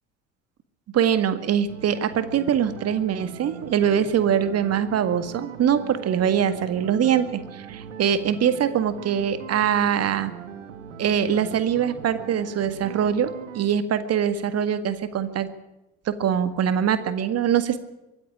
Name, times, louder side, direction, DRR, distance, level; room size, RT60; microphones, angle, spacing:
voice 1, 0.9-10.3 11.0-15.5 16.1-17.8, right 8 dB, 40° right, 12 dB, 1.9 m, -23 dB
sound 1, 1.7-13.7, right 6 dB, 70° right, 1.6 m, -40 dB
23.0 x 14.5 x 8.7 m, 0.95 s
figure-of-eight pair, 55°, 38 cm